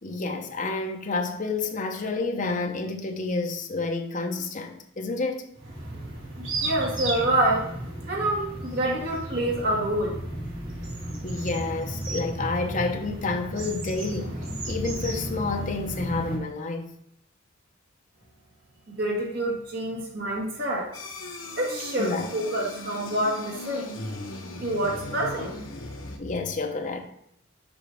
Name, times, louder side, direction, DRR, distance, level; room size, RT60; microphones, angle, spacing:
voice 1, 0.0-5.5 11.2-14.4 14.7-16.9 22.0-22.3 26.2-27.0, left 3 dB, 40° left, 0.8 m, -29 dB
sound 1, 5.6-16.4, right 1 dB, 75° right, 2.3 m, -34 dB
voice 2, 6.4-7.7 8.1-10.2 18.9-20.9 21.6-24.0 24.6-25.5, right 1 dB, 50° right, 1.8 m, -27 dB
sound 2, 20.9-26.2, left 2 dB, 80° left, 1.2 m, -38 dB
7.1 x 5.1 x 3.4 m
head